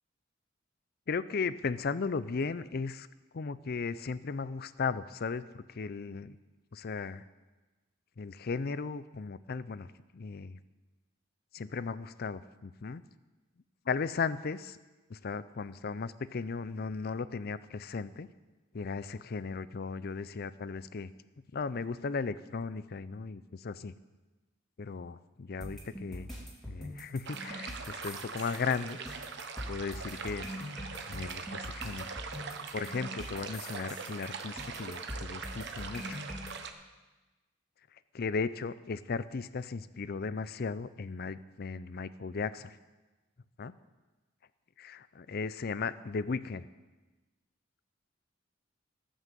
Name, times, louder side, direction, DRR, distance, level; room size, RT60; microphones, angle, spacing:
voice 1, 1.1-3.1 3.3-6.3 6.7-7.2 8.2-9.9 10.1-10.6 11.5-13.0 13.9-14.8 15.1-18.3 18.7-21.1 21.5-23.9 24.8-26.3 26.6-29.0 29.7-30.5 31.1-32.1 32.7-36.2 38.1-42.8 43.6-43.7 44.8-46.7, left 4 dB, 50° left, 15 dB, 0.5 m, -36 dB
sound 1, 25.6-36.5, equal, ahead, 3.2 m, -43 dB
sound 2, 27.2-36.7, right 5 dB, 60° right, 1.1 m, -42 dB
18.0 x 6.4 x 7.5 m, 1.2 s
head